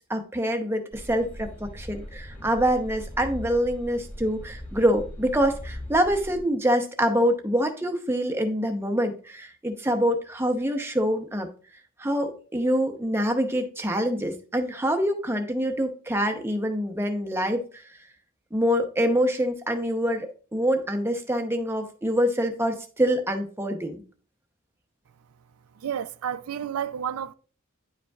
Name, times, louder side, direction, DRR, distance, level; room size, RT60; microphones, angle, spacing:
voice 1, 0.1-11.5 12.0-17.8 18.5-24.0, equal, 10° right, 0.8 m, -25 dB
sound 1, 0.9-6.4, equal, 25° left, 2.1 m, -39 dB
voice 2, 25.8-27.3, right 8 dB, 85° right, 0.4 m, -31 dB
10.0 x 5.1 x 2.3 m
head